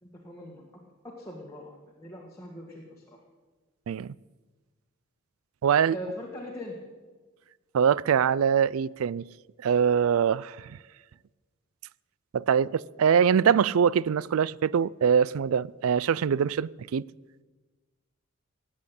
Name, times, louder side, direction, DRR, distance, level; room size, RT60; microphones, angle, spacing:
voice 1, 0.0-0.6 1.0-3.2 5.9-6.8, left 1 dB, 15° left, 1.8 m, -41 dB
voice 2, 5.6-6.0 7.7-9.2 9.6-10.8 12.3-17.0, right 7 dB, 80° right, 0.4 m, -23 dB
18.5 x 8.8 x 8.2 m
head